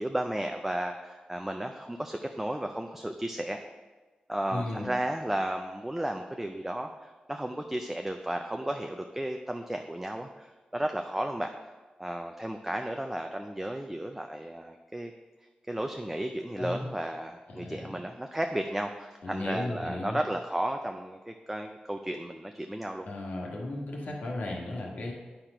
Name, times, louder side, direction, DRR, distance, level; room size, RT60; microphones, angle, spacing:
voice 1, 0.0-3.6 4.3-11.7 12.0-15.1 15.7-23.1, right 1 dB, 10° right, 4 dB, 0.4 m, -34 dB
voice 2, 4.5-4.9 16.6-16.8 17.5-18.0 19.2-20.2 23.0-25.1, left 2 dB, 70° left, -1 dB, 1.6 m, -35 dB
9.8 x 4.4 x 5.0 m, 1.3 s
wide cardioid pair, 155°, 3 cm